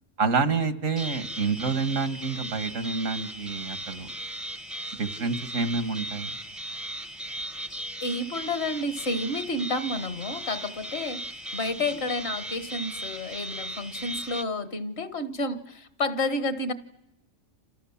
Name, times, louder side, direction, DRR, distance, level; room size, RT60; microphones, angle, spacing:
voice 1, 0.2-4.1 5.0-6.3, right 4 dB, 85° right, 10 dB, 2.0 m, -28 dB
sound 1, 1.0-14.4, right 1 dB, ahead, 0.7 m, -37 dB
voice 2, 8.0-11.2 11.5-16.7, left 2 dB, 55° left, 11 dB, 1.6 m, -30 dB
28.5 x 27.5 x 7.2 m, 0.86 s
omnidirectional pair, 1.3 m